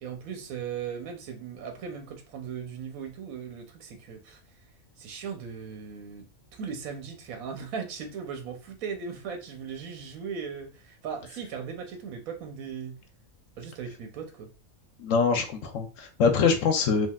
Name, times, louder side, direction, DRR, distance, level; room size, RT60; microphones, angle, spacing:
voice 1, 0.0-4.4 5.0-6.3 6.5-13.0 13.6-14.5, right 6 dB, 85° right, 1.1 m, -38 dB
voice 2, 15.0-17.1, left 5 dB, 70° left, 0.9 m, -24 dB
3.5 x 2.4 x 2.3 m
omnidirectional pair, 1.4 m